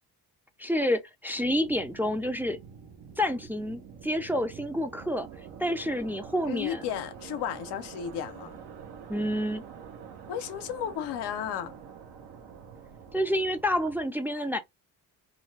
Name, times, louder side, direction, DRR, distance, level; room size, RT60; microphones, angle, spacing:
voice 1, 0.6-2.6 3.2-5.3 5.6-6.8 9.1-9.6 13.1-14.6, equal, 5° right, 0.3 m, -28 dB
sound 1, 1.3-14.1, right 7 dB, 85° right, 0.8 m, -46 dB
voice 2, 6.5-8.6 10.3-11.7, left 9 dB, 90° left, 0.6 m, -34 dB
2.5 x 2.2 x 3.1 m
cardioid pair, 70°, 40 cm